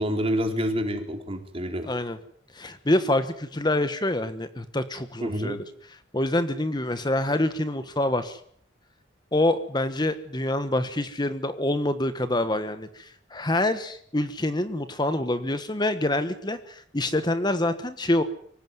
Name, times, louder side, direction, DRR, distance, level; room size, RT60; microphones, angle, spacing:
voice 1, 0.0-1.9 5.2-5.6, equal, 30° right, 5 dB, 4.0 m, -28 dB
voice 2, 1.8-2.2 2.5-5.6 6.1-8.4 9.3-18.2, left 1 dB, 20° left, 11 dB, 1.3 m, -26 dB
25.0 x 16.5 x 9.6 m, 0.63 s
head